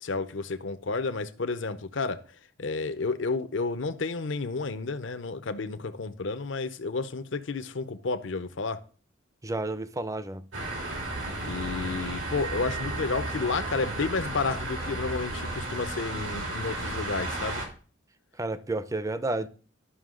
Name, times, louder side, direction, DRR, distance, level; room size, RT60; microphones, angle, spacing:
voice 1, 0.0-2.2 2.6-8.8 11.4-17.6, left 4 dB, 75° left, 0.7 m, -31 dB
voice 2, 9.4-10.4 18.4-19.5, right 2 dB, 15° right, 0.5 m, -31 dB
sound 1, 10.5-17.7, right 2 dB, 85° right, 2.5 m, -33 dB
11.0 x 5.6 x 3.7 m
head